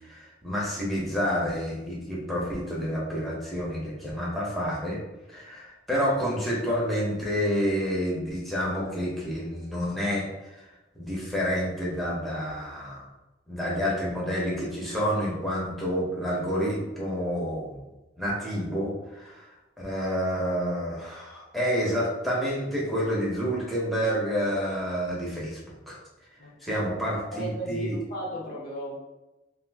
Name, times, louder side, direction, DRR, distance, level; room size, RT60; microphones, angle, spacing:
voice 1, 0.1-5.0 5.3-10.3 11.0-13.0 13.5-17.7 18.2-19.5 19.8-26.0 26.6-27.9, equal, ahead, -6 dB, 0.8 m, -29 dB
voice 2, 26.4-29.0, right 1 dB, 50° left, -4 dB, 0.7 m, -37 dB
2.5 x 2.5 x 3.4 m, 1.0 s
head